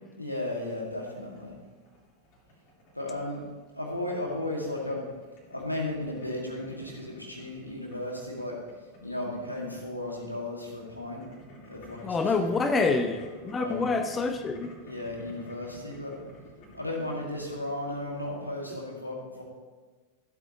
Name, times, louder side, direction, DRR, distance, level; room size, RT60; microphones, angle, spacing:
voice 1, 0.2-1.6 2.9-3.4 3.7-5.1 5.5-8.6 9.0-11.3 11.7-13.0 13.6-13.9 14.8-16.2 16.7-19.4, left 1 dB, 85° left, -1 dB, 2.0 m, -35 dB
Boiling, 0.5-18.6, equal, 40° left, 3.5 m, -53 dB
voice 2, 12.0-14.7, left 3 dB, 20° left, 7 dB, 0.7 m, -27 dB
15.0 x 8.1 x 2.9 m, 1.4 s
figure-of-eight pair, 90°, 0 cm